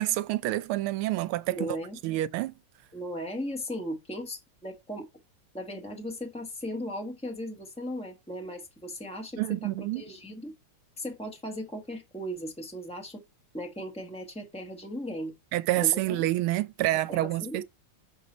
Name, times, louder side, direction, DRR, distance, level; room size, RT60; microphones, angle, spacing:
voice 1, 0.0-1.7 2.0-2.5 9.4-10.0 15.5-17.6, right 16 dB, 80° right, 1.4 m, -28 dB
voice 2, 1.5-2.0 2.9-5.1 5.5-9.7 9.9-10.5 11.0-13.2 13.5-15.3 15.8-16.2 17.1-17.6, equal, 10° left, 0.4 m, -37 dB
6.5 x 4.0 x 4.3 m
omnidirectional pair, 2.4 m